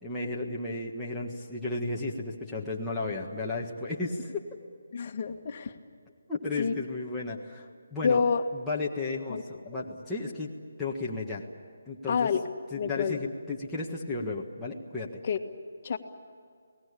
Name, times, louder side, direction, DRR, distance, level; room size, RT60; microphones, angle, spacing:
voice 1, 0.0-4.4 6.3-8.2 8.5-10.5 10.8-11.4 11.9-12.3 12.7-15.2, left 3 dB, 5° left, -7 dB, 1.6 m, -34 dB
voice 2, 4.9-5.7 6.6-6.7 8.0-8.4 9.3-9.4 12.1-12.4 12.8-13.2 15.2-15.4 15.8-16.0, left 6 dB, 40° left, 5 dB, 1.8 m, -27 dB
29.0 x 19.0 x 8.6 m, 2.1 s
hypercardioid pair, 165°, 0 cm